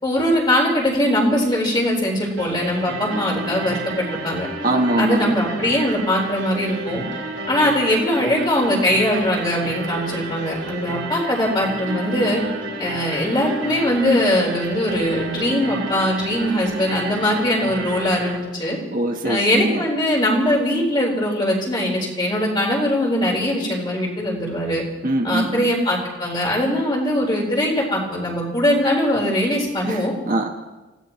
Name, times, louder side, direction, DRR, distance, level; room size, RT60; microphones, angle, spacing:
voice 1, 0.0-4.5 5.0-7.0 7.5-12.4 12.8-18.8 19.2-24.8 25.2-30.1, left 1 dB, 25° left, -2 dB, 4.2 m, -21 dB
sound 1, 2.4-18.4, right 2 dB, 65° right, 2.7 m, -31 dB
voice 2, 4.6-5.4 18.9-19.8 25.0-25.7 29.8-30.5, right 1 dB, 45° right, 3 dB, 1.2 m, -22 dB
27.0 x 17.0 x 3.1 m, 1.1 s
head